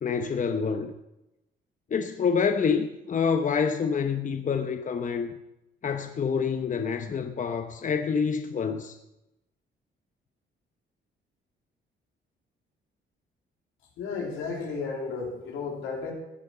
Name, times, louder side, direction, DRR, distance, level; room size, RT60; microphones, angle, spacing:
voice 1, 0.0-0.9 1.9-5.4 5.8-9.0, left 6 dB, 40° left, 0.9 m, -27 dB
voice 2, 14.0-16.1, left 4 dB, 85° left, 3.4 m, -33 dB
15.5 x 9.1 x 5.7 m
cardioid pair, 90°, 20 cm